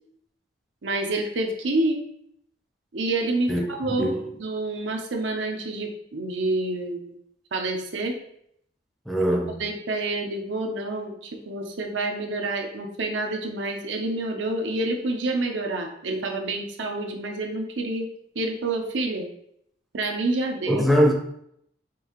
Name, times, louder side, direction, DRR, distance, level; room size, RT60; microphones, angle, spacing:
voice 1, 0.8-2.0 2.9-7.2 7.5-8.2 9.6-18.1 18.3-19.3 19.9-20.8, right 2 dB, 90° right, 3 dB, 0.7 m, -28 dB
voice 2, 9.1-9.6 20.7-21.1, equal, ahead, 1 dB, 0.5 m, -21 dB
5.3 x 2.7 x 3.0 m, 0.71 s
head